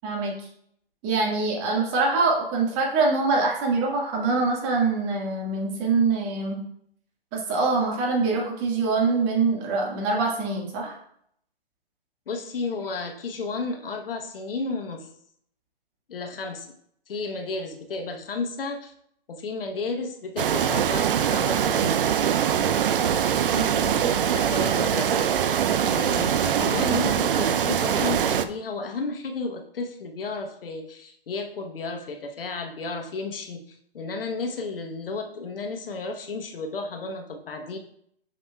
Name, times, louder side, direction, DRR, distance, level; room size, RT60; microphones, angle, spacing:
voice 1, 0.0-0.5 1.0-6.6 7.3-11.0 23.5-23.8 26.6-26.8, right 3 dB, 30° right, -1 dB, 1.7 m, -24 dB
voice 2, 12.3-15.1 16.1-16.7 17.1-18.9 19.3-22.1 23.5-25.3 25.8-37.8, left 3 dB, 65° left, 4 dB, 1.1 m, -33 dB
sound 1, 20.4-28.5, right 8 dB, 65° right, 0.5 m, -23 dB
7.7 x 6.1 x 2.3 m, 0.69 s
hypercardioid pair, 135°, 30 cm